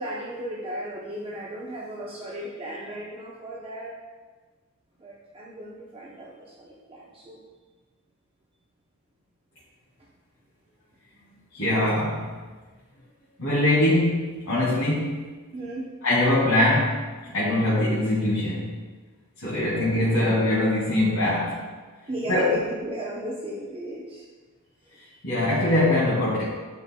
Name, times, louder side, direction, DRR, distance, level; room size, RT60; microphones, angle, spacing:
voice 1, 0.0-4.0 5.0-7.5 10.0-10.1 15.5-15.9 22.1-24.3 24.8-25.1, right 1 dB, 25° right, -4 dB, 0.7 m, -36 dB
voice 2, 11.5-12.3 13.4-15.2 16.0-17.1 17.3-18.8 19.4-21.6 22.3-22.5 25.2-26.4, left 1 dB, 70° left, -9 dB, 2.0 m, -22 dB
10.5 x 5.2 x 2.2 m, 1.4 s
head